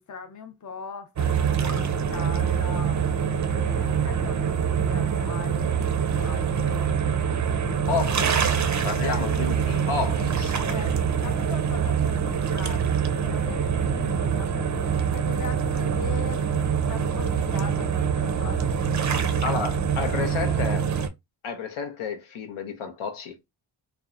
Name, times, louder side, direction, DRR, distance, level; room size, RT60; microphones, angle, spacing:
voice 1, 0.0-3.0 3.5-6.9 9.0-9.3 10.6-20.2, left 5 dB, 35° left, 0.6 m, -41 dB
sound 1, 1.2-21.1, right 7 dB, 35° right, 0.5 m, -25 dB
voice 2, 7.9-10.7 19.4-20.9 21.4-23.4, left 5 dB, 75° left, 0.7 m, -31 dB
2.7 x 2.2 x 2.4 m
cardioid pair, 50°, 50 cm